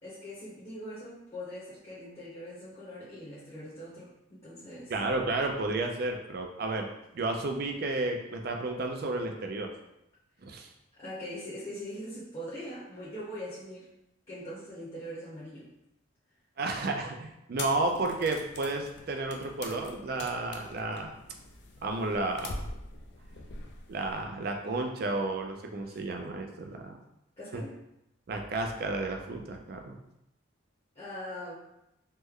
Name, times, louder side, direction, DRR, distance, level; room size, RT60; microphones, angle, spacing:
voice 1, 0.0-4.9 11.0-13.9 14.3-15.7 25.8-26.0 27.4-27.8 30.9-31.5, equal, 30° left, -9 dB, 0.8 m, -42 dB
voice 2, 4.9-6.9 7.1-9.7 10.4-10.7 16.6-21.1 21.8-22.6 23.9-27.0 27.5-27.6 28.3-30.0, right 2 dB, 50° right, 3 dB, 0.4 m, -32 dB
sound 1, 17.6-24.3, left 2 dB, 60° left, 0.4 m, -44 dB
3.1 x 2.1 x 3.6 m, 0.85 s
head